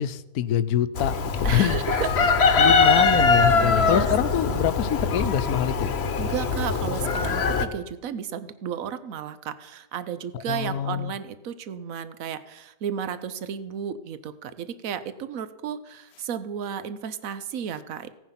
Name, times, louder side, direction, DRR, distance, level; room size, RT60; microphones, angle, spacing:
voice 1, 0.0-1.8 2.6-5.9 10.3-11.1, left 10 dB, 85° left, 14 dB, 1.2 m, -25 dB
Chicken rooster, 1.0-7.7, left 4 dB, 50° left, 1.1 m, -22 dB
voice 2, 1.4-2.1 2.6-2.7 3.5-4.1 4.3-4.7 6.2-18.1, right 8 dB, 70° right, 13 dB, 1.2 m, -33 dB
16.5 x 9.4 x 5.8 m, 1.0 s
omnidirectional pair, 1.5 m